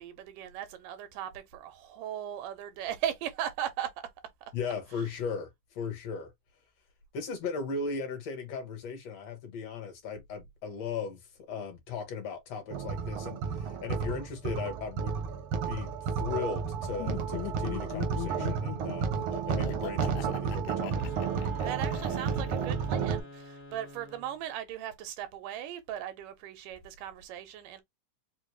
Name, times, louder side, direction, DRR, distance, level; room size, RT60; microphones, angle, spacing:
voice 1, 0.0-4.1 21.6-27.8, right 11 dB, 90° right, 2.5 m, -38 dB
voice 2, 4.5-6.3 7.1-21.0, left 5 dB, 60° left, 2.1 m, -37 dB
sound 1, 12.7-23.2, right 6 dB, 75° right, 1.3 m, -32 dB
Laughter, 17.0-23.0, left 15 dB, 75° left, 1.9 m, -40 dB
sound 2, 20.8-24.4, left 1 dB, 45° left, 0.8 m, -48 dB
5.4 x 2.2 x 3.2 m
omnidirectional pair, 3.6 m